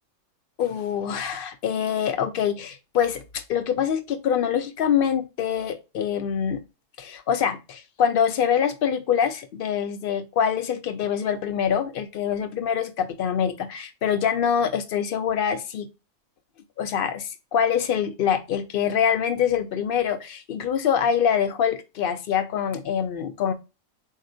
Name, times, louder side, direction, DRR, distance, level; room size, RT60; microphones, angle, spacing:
voice 1, 0.6-6.6 7.0-15.9 16.8-23.5, left 8 dB, 65° left, 0.5 m, -25 dB
3.9 x 2.8 x 2.5 m
omnidirectional pair, 1.4 m